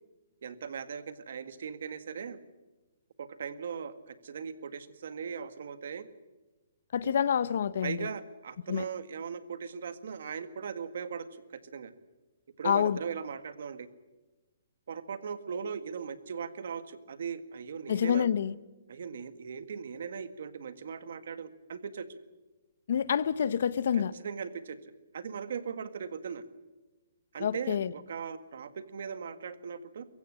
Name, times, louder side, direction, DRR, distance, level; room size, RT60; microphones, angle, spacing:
voice 1, 0.4-2.4 3.2-6.1 7.0-7.1 7.8-11.9 12.6-13.9 14.9-18.3 18.9-22.1 23.9-26.4 27.3-30.1, right 6 dB, 65° right, 1.8 m, -39 dB
voice 2, 6.9-8.1 8.7-8.8 12.6-13.0 17.9-18.5 22.9-24.1 27.4-27.9, left 8 dB, 60° left, 0.9 m, -27 dB
23.5 x 15.5 x 9.9 m
hypercardioid pair, 160°, 0 cm